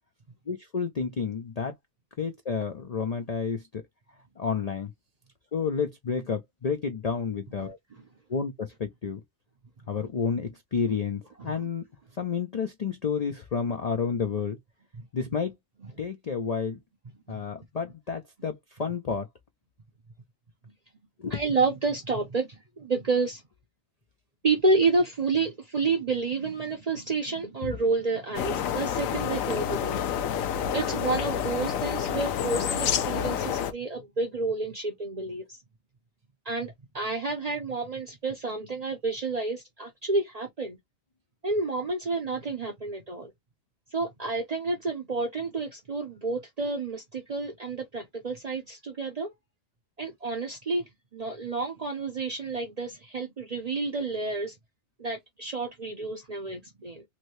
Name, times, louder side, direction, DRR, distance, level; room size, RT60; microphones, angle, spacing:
voice 1, 0.5-1.7 2.2-3.8 4.4-4.9 5.5-7.8 8.3-9.2 9.9-11.8 12.2-14.6 15.1-15.5 16.0-16.8 17.3-19.3 21.2-21.4 27.6-27.7, left 6 dB, 55° left, 0.4 m, -30 dB
voice 2, 21.3-23.4 24.4-30.0 30.7-35.6 36.5-40.8 41.4-43.3 43.9-49.3 50.0-50.8 51.1-54.5 55.0-57.0, right 3 dB, 45° right, 0.5 m, -30 dB
sound 1, 28.3-33.7, left 9 dB, 90° left, 1.0 m, -28 dB
2.9 x 2.7 x 3.0 m
omnidirectional pair, 1.4 m